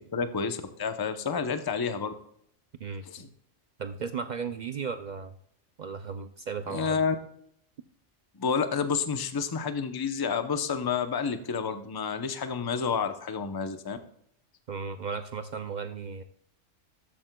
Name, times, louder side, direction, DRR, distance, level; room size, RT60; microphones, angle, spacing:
voice 1, 0.1-2.1 3.0-3.3 6.7-7.1 8.4-14.0, left 6 dB, 25° left, 9 dB, 0.5 m, -29 dB
voice 2, 3.8-5.3 5.8-7.0 14.7-16.2, right 5 dB, 75° right, 10 dB, 0.4 m, -35 dB
12.5 x 8.5 x 2.2 m, 0.69 s
omnidirectional pair, 1.3 m